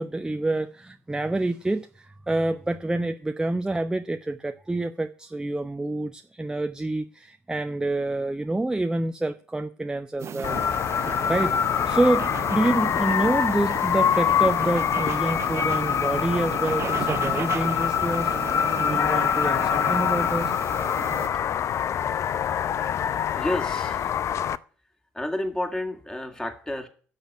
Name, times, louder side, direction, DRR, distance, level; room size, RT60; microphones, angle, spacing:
voice 1, 0.0-10.6 11.3-11.6 11.9-18.4 18.8-20.5, right 2 dB, 10° right, 0.7 m, -27 dB
sound 1, 10.2-21.3, right 8 dB, 45° right, 1.0 m, -35 dB
sound 2, 10.4-24.6, left 9 dB, 45° left, 0.6 m, -25 dB
voice 2, 23.4-24.2 25.1-26.9, left 1 dB, 10° left, 2.5 m, -30 dB
10.0 x 6.9 x 9.2 m
hypercardioid pair, 60°, 7 cm